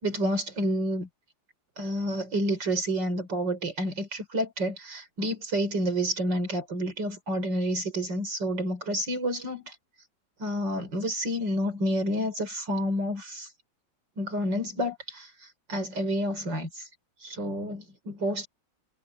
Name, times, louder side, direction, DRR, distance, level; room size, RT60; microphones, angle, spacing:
voice 1, 0.0-1.1 1.8-9.8 10.4-13.5 14.2-16.9 17.2-18.5, equal, 70° right, 5.3 m, -29 dB
omnidirectional pair, 2.0 m